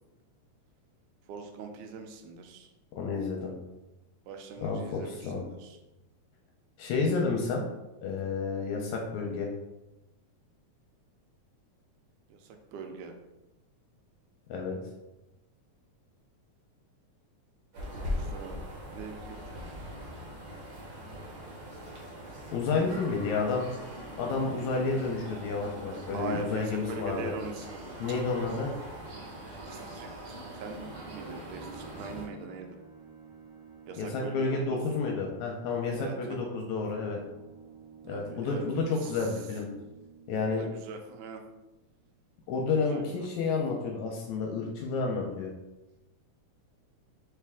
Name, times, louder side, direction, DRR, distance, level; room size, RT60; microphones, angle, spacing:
voice 1, 1.3-2.7 4.3-5.8 12.3-13.1 17.9-18.6 18.9-19.7 22.7-23.2 26.1-27.8 29.7-32.8 33.9-34.6 35.9-36.4 38.1-38.6 39.0-39.3 40.5-41.4 42.9-43.3, right 4 dB, 85° right, 4 dB, 2.2 m, -42 dB
voice 2, 3.0-3.5 4.6-5.5 6.8-7.6 8.0-9.5 14.5-14.8 22.5-23.7 24.2-27.3 28.0-28.7 34.0-37.2 38.1-39.7 40.3-40.6 42.5-45.5, left 4 dB, 80° left, 0 dB, 1.9 m, -30 dB
sound 1, 17.7-32.3, equal, 55° right, 1.3 m, -41 dB
sound 2, 30.3-41.6, right 6 dB, 40° left, 1.3 m, -52 dB
4.6 x 3.3 x 3.5 m, 0.99 s
omnidirectional pair, 3.5 m